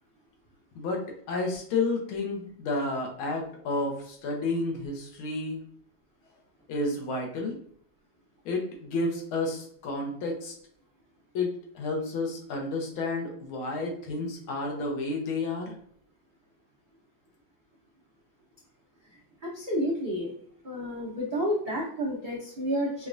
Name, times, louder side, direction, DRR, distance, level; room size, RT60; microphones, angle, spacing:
voice 1, 1.3-5.6 6.7-7.6 8.4-10.5 11.3-15.8, left 3 dB, 80° left, 1 dB, 1.7 m, -31 dB
voice 2, 19.4-20.3 20.6-23.1, equal, 60° right, -6 dB, 0.5 m, -30 dB
5.1 x 2.3 x 2.5 m, 0.63 s
omnidirectional pair, 2.3 m